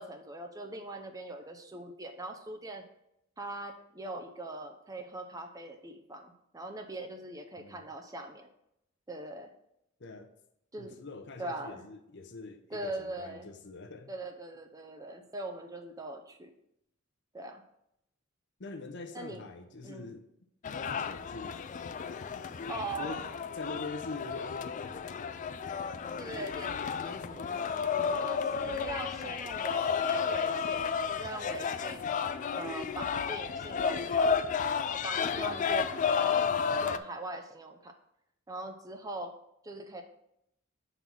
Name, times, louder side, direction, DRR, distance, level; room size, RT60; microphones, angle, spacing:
voice 1, 0.0-2.9 3.4-8.5 9.1-9.5 10.7-11.0 11.4-11.8 12.7-13.5 14.1-16.5 17.3-17.6 19.1-19.4 19.8-20.1 22.7-23.2 26.2-27.5 28.2-32.1 32.5-34.4 34.8-38.0 38.5-39.4 39.6-40.0, right 2 dB, 15° right, 5 dB, 0.5 m, -41 dB
voice 2, 10.0-10.3 10.8-14.1 18.6-20.2 20.8-21.6 23.0-23.3 23.6-25.4 26.8-28.2 35.3-35.8, left 3 dB, 55° left, 7 dB, 0.7 m, -44 dB
sound 1, 20.6-37.0, left 6 dB, 35° left, 0.3 m, -32 dB
5.4 x 4.0 x 6.0 m, 0.79 s
head